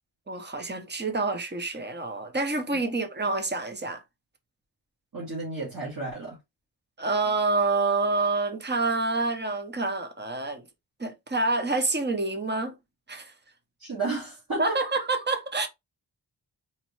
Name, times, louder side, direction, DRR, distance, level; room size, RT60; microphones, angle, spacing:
voice 1, 0.3-4.0 7.0-10.7 11.0-12.8 13.1-13.3 14.6-15.7, right 3 dB, 25° right, 0.8 m, -27 dB
voice 2, 5.1-6.4 13.8-14.8, right 3 dB, 50° right, 2.1 m, -32 dB
4.2 x 3.1 x 3.2 m
wide cardioid pair, 100°, 44 cm